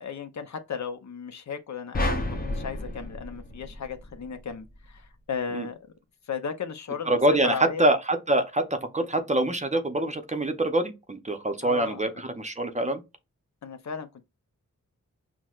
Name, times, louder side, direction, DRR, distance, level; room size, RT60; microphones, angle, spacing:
voice 1, 0.0-5.8 6.2-7.9 11.6-12.0 13.6-14.2, left 6 dB, 60° left, 0.6 m, -35 dB
sound 1, 1.9-4.4, left 1 dB, 30° left, 0.7 m, -31 dB
voice 2, 7.1-8.6 8.9-13.0, right 1 dB, 25° right, 0.6 m, -25 dB
5.9 x 2.1 x 2.4 m
wide cardioid pair, 110°, 31 cm